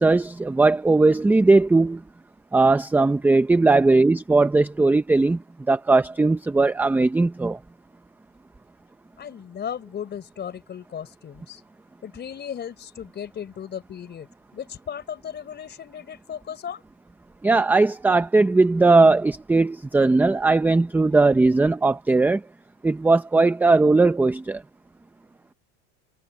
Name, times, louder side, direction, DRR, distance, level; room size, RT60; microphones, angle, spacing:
voice 1, 0.0-2.0 2.5-5.4 5.7-7.6 17.4-22.4 22.8-24.6, right 3 dB, 5° right, 0.6 m, -18 dB
voice 2, 9.2-11.6 12.0-16.8, left 8 dB, 25° left, 4.1 m, -36 dB
supercardioid pair, 145°, 38 cm